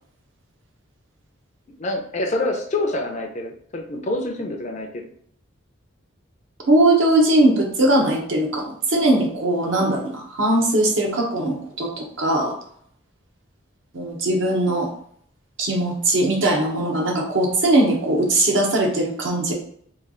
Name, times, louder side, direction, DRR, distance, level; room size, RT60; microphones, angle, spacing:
voice 1, 1.8-5.0, left 2 dB, 35° left, 3 dB, 0.5 m, -26 dB
voice 2, 6.7-12.5 13.9-14.9 15.6-19.5, right 1 dB, 65° right, 0 dB, 0.9 m, -20 dB
3.2 x 2.4 x 3.7 m, 0.64 s
head